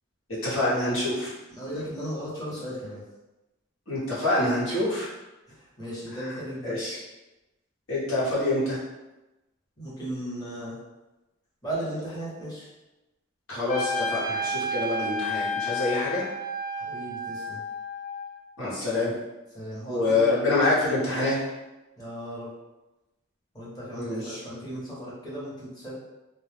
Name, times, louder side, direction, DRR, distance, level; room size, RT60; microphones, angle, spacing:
voice 1, 0.4-1.3 3.9-5.1 6.6-7.0 7.9-8.8 13.5-16.3 18.6-19.1 19.9-21.4 24.0-24.4, left 2 dB, 85° left, -9 dB, 1.0 m, -26 dB
voice 2, 1.5-3.0 5.5-6.8 9.8-10.8 11.6-12.7 16.8-17.6 19.5-20.3 22.0-22.5 23.5-26.0, right 1 dB, 20° left, -8 dB, 0.9 m, -36 dB
Trumpet, 13.7-18.4, left 1 dB, 40° left, 0.4 m, -31 dB
2.2 x 2.0 x 3.2 m, 1.0 s
head